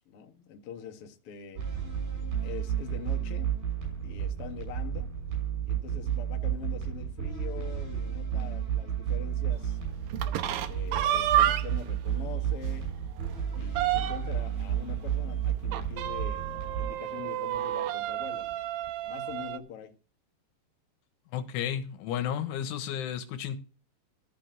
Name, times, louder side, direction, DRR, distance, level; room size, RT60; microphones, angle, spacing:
voice 1, 0.0-1.6 2.4-3.5 4.0-5.1 5.6-9.8 10.3-12.9 13.5-16.4 16.8-18.6 19.1-19.9, left 8 dB, 65° left, 1.4 m, -43 dB
sound 1, 1.6-16.9, right 9 dB, 50° right, 8.4 m, -32 dB
sound 2, 10.1-11.9 12.3-12.4 12.8-12.9 13.2-14.4 15.7-19.6, right 12 dB, 85° right, 2.0 m, -30 dB
voice 2, 21.3-23.6, left 9 dB, 85° left, 3.7 m, -32 dB
14.0 x 5.1 x 9.0 m
omnidirectional pair, 5.4 m